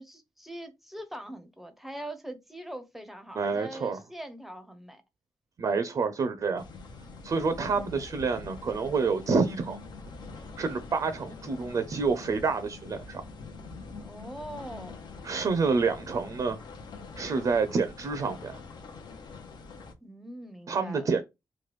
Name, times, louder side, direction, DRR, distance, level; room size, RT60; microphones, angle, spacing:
voice 1, 0.0-5.0 14.0-15.0 20.0-21.2, right 1 dB, 5° right, 0.6 m, -42 dB
voice 2, 3.4-4.0 5.6-6.6 7.2-9.8 10.6-13.2 15.2-16.6 17.2-18.6 20.7-21.2, right 4 dB, 50° right, 0.5 m, -28 dB
sound 1, 6.6-19.9, left 4 dB, 75° left, 0.6 m, -45 dB
3.1 x 2.2 x 3.1 m
cardioid pair, 100°, 8 cm